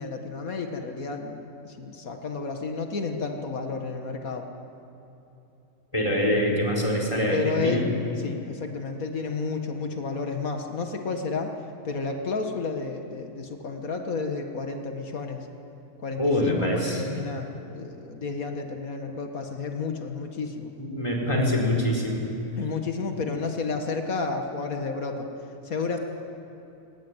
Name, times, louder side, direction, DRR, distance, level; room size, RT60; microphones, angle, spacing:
voice 1, 0.0-1.4 1.6-4.5 7.3-7.8 8.2-11.5 11.8-15.5 16.0-20.7 22.6-25.3 25.6-26.0, left 4 dB, 90° left, 4 dB, 2.2 m, -31 dB
voice 2, 5.9-7.8 16.2-17.0 20.8-22.3, left 1 dB, 20° left, 0 dB, 4.6 m, -24 dB
22.5 x 20.0 x 9.8 m, 2.9 s
omnidirectional pair, 1.4 m